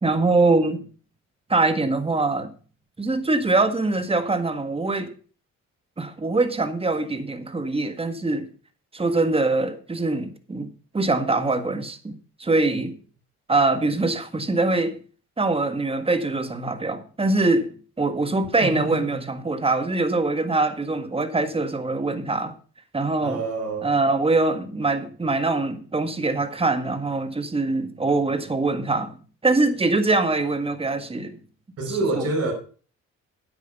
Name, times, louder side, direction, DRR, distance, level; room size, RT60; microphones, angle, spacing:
voice 1, 0.0-0.9 1.5-2.5 3.0-5.1 6.0-8.5 8.9-10.7 10.9-12.1 12.4-12.9 13.5-15.0 15.4-17.7 18.0-22.5 22.9-23.4 23.8-29.1 29.4-31.4 31.9-32.2, right 3 dB, 20° right, 1.6 m, -23 dB
voice 2, 18.6-19.2 23.2-23.9 31.8-32.5, right 2 dB, 55° right, 5.6 m, -27 dB
9.8 x 8.6 x 5.4 m
cardioid pair, 90°, 30 cm